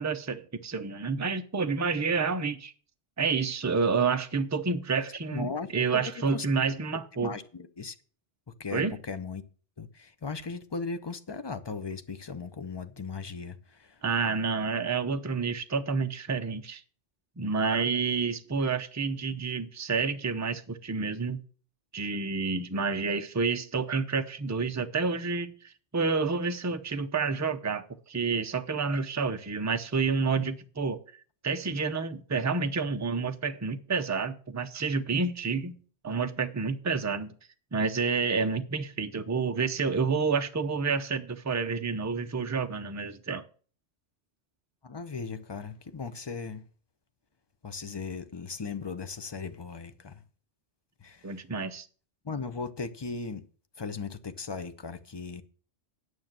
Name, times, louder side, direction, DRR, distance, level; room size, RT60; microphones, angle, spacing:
voice 1, 0.0-2.7 3.2-7.3 8.7-9.0 14.0-16.8 17.4-21.4 21.9-31.0 31.4-35.8 36.0-37.3 37.7-43.4 51.2-51.9, right 4 dB, 20° right, 0.5 m, -29 dB
voice 2, 5.3-6.0 6.3-6.4 7.2-8.0 8.6-9.4 9.8-14.0 44.8-46.6 47.6-50.2 51.0-51.4 52.2-53.4 53.8-55.4, left 4 dB, 30° left, 0.6 m, -37 dB
9.3 x 6.4 x 7.4 m
omnidirectional pair, 1.2 m